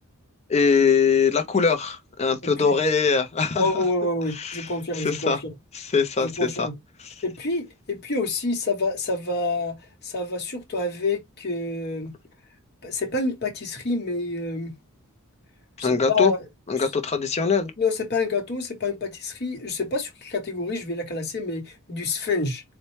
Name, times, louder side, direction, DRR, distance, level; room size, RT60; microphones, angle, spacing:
voice 1, 0.5-3.8 4.3-5.4 5.7-6.7 7.0-7.1 15.8-16.3 16.7-17.7, left 5 dB, 30° left, 0.5 m, -22 dB
voice 2, 3.6-5.5 6.2-6.7 7.2-9.8 10.0-12.1 12.8-14.7 15.8-16.4 17.8-22.6, left 3 dB, 45° left, 1.0 m, -27 dB
4.2 x 2.2 x 3.1 m
head